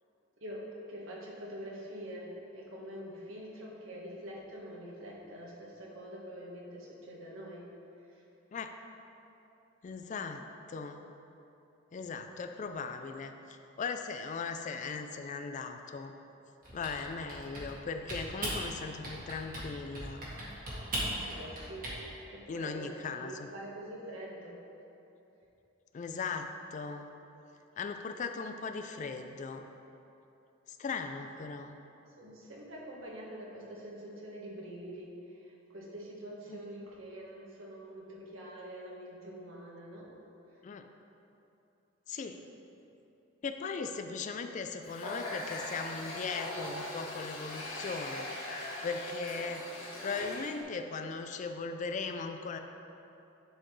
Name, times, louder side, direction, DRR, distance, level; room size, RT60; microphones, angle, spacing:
voice 1, 0.4-7.6 8.1-8.2 21.2-21.9 22.3-24.5 32.2-40.1, right 1 dB, 85° right, -4 dB, 1.4 m, -45 dB
voice 2, 9.8-10.4 10.7-11.0 11.9-16.1 16.7-20.2 22.5-23.5 25.9-27.1 27.8-29.7 30.7-31.8 36.5-36.6 40.6-40.9 42.1-42.4 43.4-48.3 48.8-49.6 50.0-52.6, left 4 dB, 40° left, 6 dB, 0.3 m, -38 dB
Typing, 16.6-17.8 18.1-18.6 19.0-19.7 19.9-22.0, right 1 dB, 45° right, 1.5 m, -38 dB
Water tap faucet, 44.8-50.6, left 1 dB, 85° left, 1.3 m, -40 dB
10.5 x 4.2 x 3.2 m, 2.9 s
head